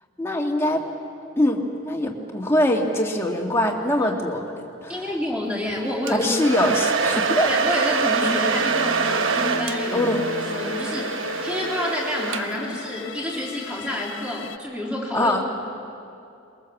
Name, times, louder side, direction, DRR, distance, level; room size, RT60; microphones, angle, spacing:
voice 1, 0.2-0.8 1.4-1.6 1.9-5.1 6.1-7.5 9.9-10.2 15.1-15.4, left 1 dB, 10° left, 0 dB, 2.1 m, -23 dB
voice 2, 4.9-6.3 7.5-10.1 10.5-15.4, left 1 dB, 5° right, -3 dB, 3.7 m, -29 dB
Domestic sounds home sounds, 6.1-12.8, right 5 dB, 70° right, 1.2 m, -25 dB
sound 1, 8.0-14.6, left 5 dB, 60° left, 0.6 m, -36 dB
22.5 x 22.0 x 7.3 m, 2.6 s
head